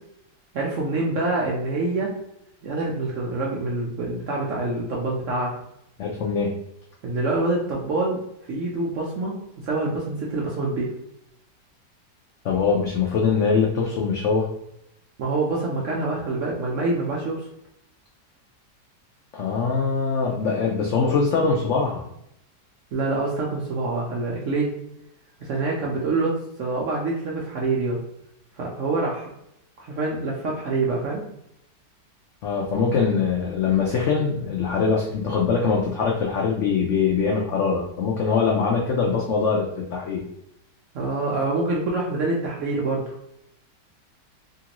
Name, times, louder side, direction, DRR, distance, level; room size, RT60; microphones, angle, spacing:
voice 1, 0.5-2.1 2.6-5.5 7.0-8.2 8.5-9.3 9.6-10.9 15.2-17.5 22.9-24.7 25.4-28.0 28.6-29.3 29.8-31.2 40.9-43.1, right 3 dB, 70° right, -3 dB, 0.7 m, -26 dB
voice 2, 6.0-6.5 12.4-14.5 19.3-22.0 32.4-40.2, left 5 dB, 85° left, -1 dB, 0.6 m, -22 dB
2.9 x 2.5 x 2.9 m, 0.78 s
omnidirectional pair, 1.8 m